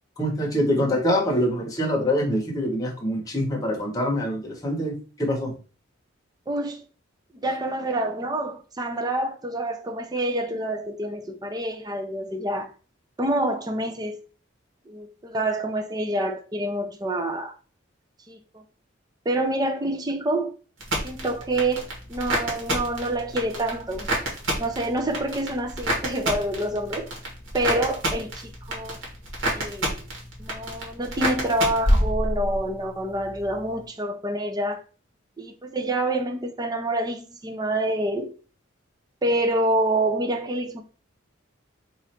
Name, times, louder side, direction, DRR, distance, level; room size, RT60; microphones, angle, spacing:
voice 1, 0.2-5.5, equal, 20° left, 0.9 m, -25 dB
voice 2, 6.5-6.8 7.3-12.7 13.2-14.2 14.9-17.5 18.3-18.6 19.3-20.5 21.0-24.1 24.6-27.1 27.5-29.0 29.4-30.0 30.4-34.8 35.4-38.3 39.2-40.8, right 1 dB, 20° right, 0.5 m, -27 dB
sound 1, 20.8-32.7 33.0-33.6, equal, 75° right, 1.5 m, -28 dB
3.1 x 2.5 x 4.2 m
head